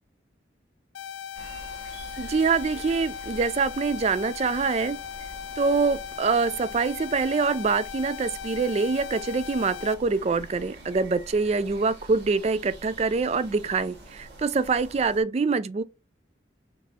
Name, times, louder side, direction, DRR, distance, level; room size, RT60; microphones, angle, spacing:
sound 1, 0.9-9.9, left 9 dB, 85° left, 0.4 m, -38 dB
sound 2, 1.3-15.2, right 1 dB, 75° right, 1.7 m, -46 dB
voice 1, 2.2-5.0 5.6-15.8, right 4 dB, 35° right, 0.3 m, -25 dB
3.9 x 3.6 x 2.8 m
head